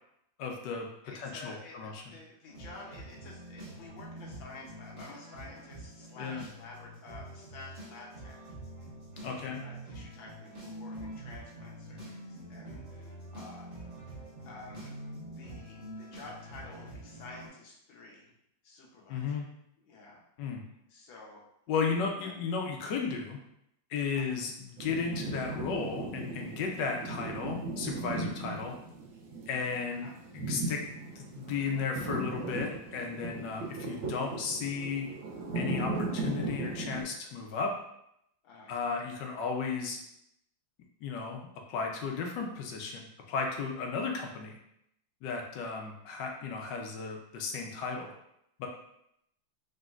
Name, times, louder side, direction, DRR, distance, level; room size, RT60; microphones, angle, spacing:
voice 1, 0.4-0.9 1.1-2.1 6.2-6.4 9.2-9.6 19.1-19.5 20.4-20.6 21.7-23.4 23.9-28.8 29.5-30.1 30.3-30.8 31.2-35.1 35.5-37.7 38.7-40.0 41.0-44.6 45.2-48.1 48.6-48.7, left 5 dB, 70° left, 2 dB, 1.2 m, -34 dB
voice 2, 1.0-8.4 9.2-13.7 14.4-15.0 15.3-18.3 18.6-19.4 19.8-20.2 20.9-21.4 22.1-22.3 24.1-24.5 29.9-30.2 38.4-38.8, left 3 dB, 90° left, -2 dB, 1.7 m, -50 dB
sound 1, 2.5-17.5, right 1 dB, 20° right, 1.1 m, -46 dB
sound 2, 24.8-37.0, right 2 dB, 80° right, 1.4 m, -37 dB
5.0 x 3.1 x 2.4 m, 0.78 s
omnidirectional pair, 2.1 m